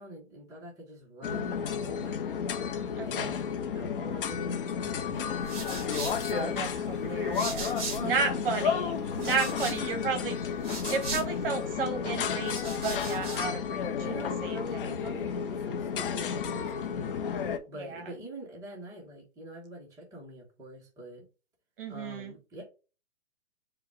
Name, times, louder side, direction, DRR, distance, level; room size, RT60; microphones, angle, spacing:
voice 1, 0.0-2.4 3.0-5.3 8.0-8.4 14.0-17.1 17.7-21.3 21.9-22.6, right 1 dB, 10° right, 1.0 m, -44 dB
sound 1, 1.2-17.6, left 7 dB, 50° left, 0.7 m, -32 dB
voice 2, 2.9-3.4 6.3-10.4 10.9-13.9 14.4-14.8 17.7-18.1 21.8-22.3, right 5 dB, 50° right, 1.3 m, -33 dB
sound 2, 5.1-8.3 8.6-11.7 12.3-13.5, right 4 dB, 30° right, 1.9 m, -40 dB
4.9 x 2.3 x 4.5 m
hypercardioid pair, 150°, 35 cm